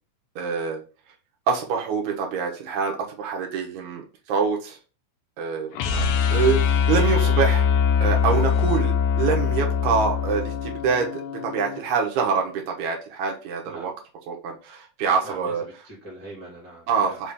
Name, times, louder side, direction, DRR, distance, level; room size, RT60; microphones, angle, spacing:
voice 1, 0.4-0.8 1.5-4.8 5.4-5.7 6.3-7.7 8.0-13.9 14.3-15.6 16.9-17.3, right 6 dB, 75° right, 1 dB, 2.1 m, -25 dB
sound 1, 5.7-11.8, left 7 dB, 85° left, 2.0 m, -22 dB
voice 2, 15.2-15.5 15.8-17.2, right 1 dB, 10° left, -6 dB, 0.9 m, -42 dB
5.2 x 2.7 x 3.5 m, 0.34 s
omnidirectional pair, 3.5 m